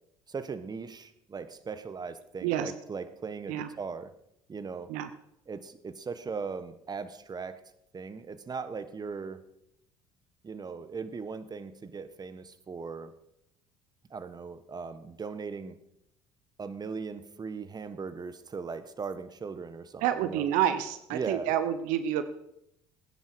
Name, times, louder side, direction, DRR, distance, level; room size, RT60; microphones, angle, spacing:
voice 1, 0.3-4.1 4.5-4.9 5.5-7.6 7.9-9.4 10.4-13.1 14.1-15.8 16.6-20.5 21.1-21.5, right 5 dB, 30° right, 12 dB, 1.3 m, -38 dB
voice 2, 2.4-2.7 3.5-3.7 4.9-5.1 20.0-22.2, right 10 dB, 70° right, 11 dB, 1.0 m, -28 dB
20.0 x 10.0 x 4.8 m, 0.80 s
hypercardioid pair, 65°, 14 cm